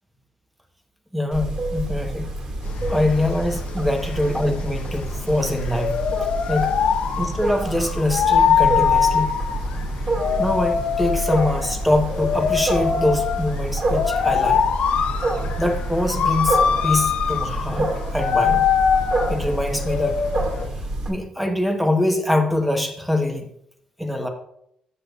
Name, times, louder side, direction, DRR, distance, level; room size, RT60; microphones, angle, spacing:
voice 1, 1.1-2.3 2.9-5.9 6.5-6.7 7.2-9.4 10.4-14.6 15.6-18.7 19.3-20.2 20.8-23.5 24.0-24.3, left 1 dB, 5° right, 4 dB, 1.0 m, -24 dB
Wild animals, 1.3-21.1, right 1 dB, 40° right, 1.9 m, -27 dB
sound 1, 2.7-20.7, left 7 dB, 65° left, 0.7 m, -23 dB
14.0 x 6.6 x 2.4 m, 0.73 s
cardioid pair, 140°, 2 cm